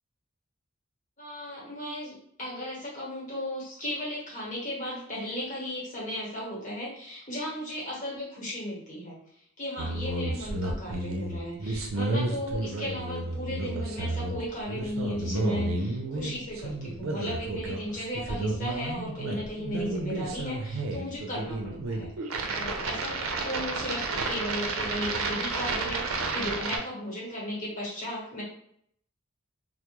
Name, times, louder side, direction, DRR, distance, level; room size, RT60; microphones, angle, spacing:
voice 1, 1.2-9.2 9.6-22.1 22.5-28.4, left 1 dB, 40° left, -5 dB, 1.0 m, -35 dB
sound 1, 9.8-26.8, right 2 dB, 85° right, 0.4 m, -31 dB
2.2 x 2.0 x 2.8 m, 0.69 s
head